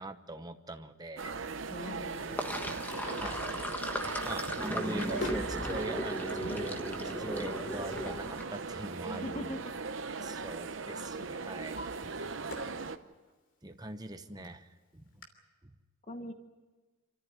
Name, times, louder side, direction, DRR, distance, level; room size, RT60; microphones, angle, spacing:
voice 1, 0.0-1.3 3.0-3.5 4.0-6.8 7.2-9.6 10.2-12.6 13.6-14.7 14.9-15.0, right 2 dB, 20° right, 8 dB, 1.0 m, -43 dB
sound 1, 1.2-13.0, right 4 dB, 60° right, 0.9 m, -39 dB
voice 2, 1.7-2.6 9.1-9.6 10.1-10.2 11.2-11.3 14.4-14.5 16.1-16.3, left 1 dB, 30° left, 6 dB, 1.1 m, -42 dB
Sink (filling or washing), 2.1-8.4, equal, 10° left, 1.2 m, -37 dB
Drawer open or close, 2.7-3.8 4.5-5.5 6.6-6.7 8.4-10.0 10.3-10.7 11.2-12.8 13.3-13.4 14.1-14.2 14.4-14.5 15.2-15.3, left 1 dB, 60° left, 3.2 m, -45 dB
26.5 x 14.0 x 9.6 m, 1.3 s
head